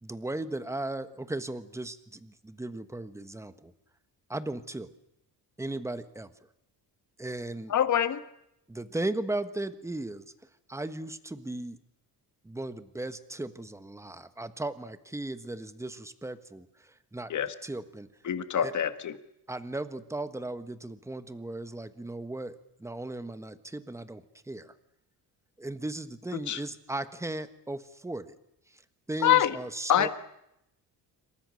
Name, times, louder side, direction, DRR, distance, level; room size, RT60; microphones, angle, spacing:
voice 1, 0.0-3.7 4.3-4.9 5.6-6.3 7.2-7.7 8.7-10.2 10.7-11.8 12.4-17.3 17.6-18.1 18.6-18.7 19.5-24.7 25.6-28.4 28.7-28.8 29.1-30.1, right 2 dB, 5° right, 11 dB, 1.3 m, -36 dB
voice 2, 7.7-8.2 17.3-17.5 18.2-19.1 26.5-26.6 29.2-29.5 29.9-30.1, left 10 dB, 50° left, 11 dB, 1.7 m, -24 dB
28.0 x 25.0 x 6.5 m, 0.81 s
cardioid pair, 145°, 39 cm